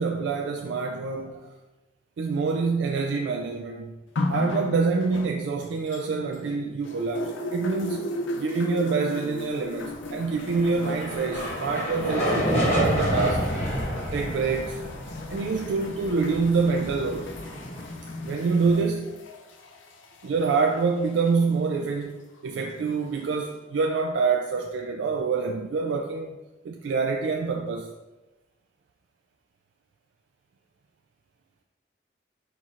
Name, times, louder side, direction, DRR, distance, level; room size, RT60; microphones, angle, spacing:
voice 1, 0.0-1.5 2.2-4.0 4.3-8.1 8.4-13.5 14.1-14.8 15.3-17.3 18.2-19.2 20.2-26.4 26.6-27.9, right 4 dB, 80° right, 3 dB, 0.3 m, -26 dB
sound 1, 4.2-6.5 6.8-21.6 22.5-22.6, left 1 dB, 85° left, 0.5 m, -36 dB
sound 2, 10.2-18.7, equal, 30° left, 1.2 m, -29 dB
4.4 x 4.2 x 2.5 m, 1.1 s
head